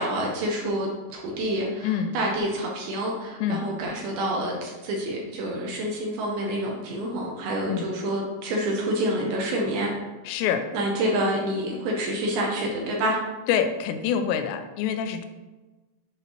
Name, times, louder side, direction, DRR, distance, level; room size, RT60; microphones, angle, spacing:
voice 1, 0.0-9.9 10.7-13.2, right 1 dB, 75° right, -1 dB, 2.4 m, -27 dB
voice 2, 1.8-2.2 3.4-3.6 7.7-7.9 10.3-10.7 13.5-15.2, left 8 dB, 85° left, 8 dB, 2.7 m, -26 dB
8.0 x 5.7 x 3.0 m, 1.2 s
omnidirectional pair, 5.2 m